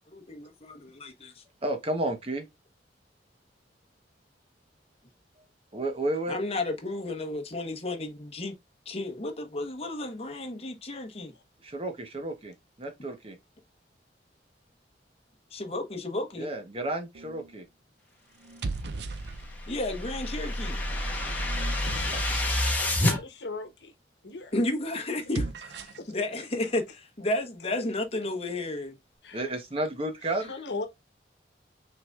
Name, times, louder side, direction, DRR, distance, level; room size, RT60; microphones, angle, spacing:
voice 1, 0.1-1.4 6.3-8.5 8.8-11.3 15.5-16.5 19.7-20.8 24.5-29.0, left 2 dB, 35° left, 1.1 m, -32 dB
voice 2, 1.6-2.5 5.7-6.4 11.6-13.4 16.4-17.7 22.1-22.2 29.3-30.5, right 1 dB, 35° right, 1.0 m, -32 dB
sound 1, 17.1-17.6 18.4-19.8 20.5-22.8 25.1-26.1, right 3 dB, 70° right, 0.5 m, -38 dB
sound 2, 19.1-23.2, left 1 dB, 10° left, 1.4 m, -28 dB
voice 3, 22.8-23.9 24.2-24.5 26.0-26.2 29.2-29.5 30.5-30.9, left 3 dB, 80° left, 1.1 m, -38 dB
5.9 x 3.8 x 2.4 m
head